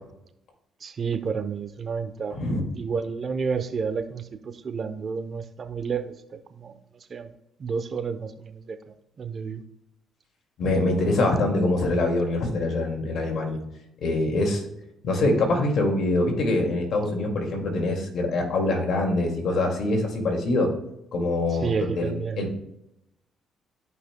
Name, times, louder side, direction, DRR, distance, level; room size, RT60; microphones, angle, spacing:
voice 1, 0.8-2.4 2.8-6.7 7.1-7.3 7.6-8.8 9.2-9.6 21.6-22.5, right 5 dB, 45° right, 10 dB, 0.8 m, -30 dB
voice 2, 10.6-13.6 14.0-14.6 15.0-20.7 21.1-22.5, left 2 dB, 65° left, 2 dB, 2.2 m, -24 dB
13.0 x 5.6 x 2.2 m, 0.84 s
cardioid pair, 75°, 0 cm